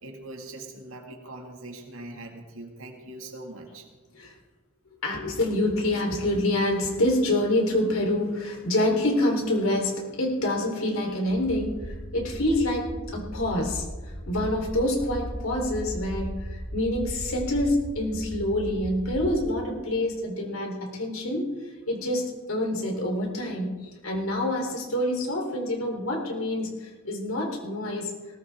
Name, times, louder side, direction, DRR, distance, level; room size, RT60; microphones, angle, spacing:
voice 1, 0.0-3.9, right 2 dB, 85° right, 1 dB, 2.2 m, -41 dB
voice 2, 5.0-12.9 13.1-13.8 14.3-28.1, left 1 dB, 90° left, 1 dB, 3.8 m, -27 dB
sound 1, 11.3-19.4, equal, 15° left, 2.8 m, -37 dB
19.5 x 19.5 x 3.7 m, 1.3 s
head